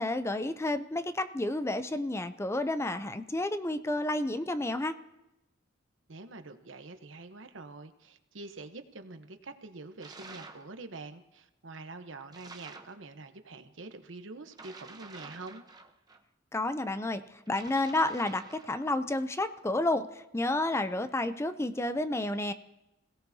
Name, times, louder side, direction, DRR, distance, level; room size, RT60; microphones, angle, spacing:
voice 1, 0.0-4.9 16.5-22.5, left 2 dB, 15° left, 11 dB, 0.5 m, -31 dB
voice 2, 6.1-15.6, right 3 dB, 75° right, 8 dB, 1.0 m, -46 dB
sound 1, 10.0-10.7 12.3-13.0 14.5-16.2 17.5-18.8, right 3 dB, 20° right, 0.9 m, -49 dB
26.5 x 17.0 x 2.8 m, 0.92 s
head